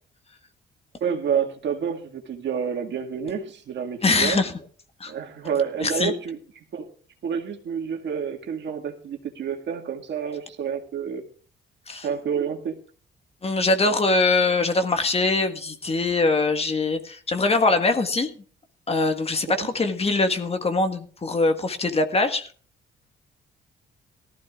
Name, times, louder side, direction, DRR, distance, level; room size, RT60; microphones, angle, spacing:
voice 1, 1.0-4.4 5.1-6.4 6.7-6.9 7.2-11.2 12.0-12.8 19.6-19.7, right 7 dB, 65° right, 3 dB, 2.0 m, -29 dB
voice 2, 4.0-4.5 5.0-5.1 5.8-6.1 11.9-12.1 13.4-18.3 18.9-22.5, left 3 dB, 30° left, 7 dB, 1.6 m, -22 dB
18.5 x 14.0 x 2.4 m, 0.41 s
cardioid pair, 90°, 20 cm